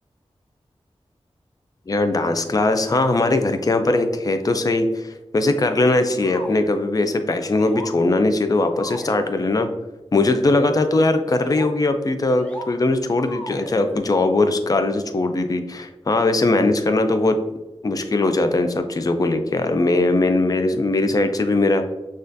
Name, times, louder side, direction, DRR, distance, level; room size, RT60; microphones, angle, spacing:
voice 1, 1.9-9.7 10.1-17.4 17.8-21.9, left 2 dB, 35° left, 7 dB, 0.4 m, -20 dB
sound 1, 6.2-6.7 7.3-7.9 8.7-9.3 10.3-10.7 11.2-11.7 12.2-12.7 13.2-14.0, equal, 10° left, 0.7 m, -37 dB
6.3 x 2.4 x 2.6 m, 1.1 s
wide cardioid pair, 65°, 11 cm